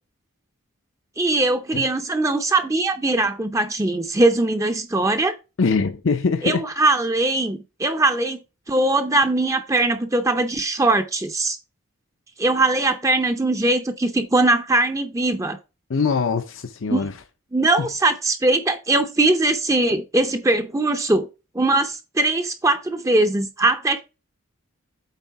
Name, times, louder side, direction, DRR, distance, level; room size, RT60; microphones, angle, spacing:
voice 1, 1.2-5.4 6.4-11.6 12.4-15.6 16.9-17.1 17.5-21.3 21.5-24.0, right 2 dB, 15° right, 0.5 m, -21 dB
voice 2, 5.6-6.6 15.9-17.2 17.8-17.9, left 4 dB, 65° left, 0.6 m, -23 dB
8.3 x 3.7 x 4.6 m
head